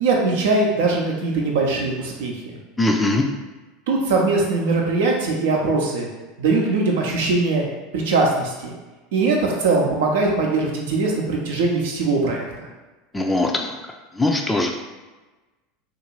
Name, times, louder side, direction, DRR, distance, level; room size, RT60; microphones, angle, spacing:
voice 1, 0.0-2.3 3.9-6.1 6.4-7.6 7.9-8.7 9.1-12.4, right 3 dB, 70° right, -1 dB, 0.6 m, -21 dB
voice 2, 2.8-3.2 13.1-13.8 14.2-14.7, left 2 dB, 10° left, 2 dB, 0.4 m, -20 dB
2.6 x 2.5 x 3.1 m, 1.2 s
hypercardioid pair, 80°, 0 cm